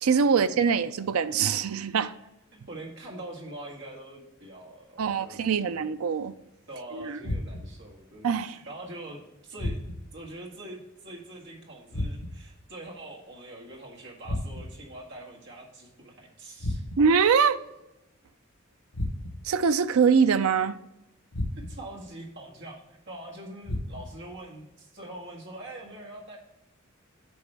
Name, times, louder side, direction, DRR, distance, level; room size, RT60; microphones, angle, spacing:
voice 1, 0.0-2.1 5.0-6.3 6.9-7.2 8.2-8.6 17.0-17.6 19.4-20.8, right 6 dB, 80° right, 0.5 m, -23 dB
voice 2, 2.7-5.7 6.7-9.8 10.1-16.8 21.5-26.4, right 1 dB, 55° right, 1.8 m, -43 dB
sound 1, 7.2-7.9 9.6-10.2 11.9-12.6 14.2-14.9 16.6-17.2 18.9-19.6 21.3-22.0 23.6-24.3, left 1 dB, 65° left, 0.9 m, -33 dB
8.6 x 5.3 x 3.4 m
head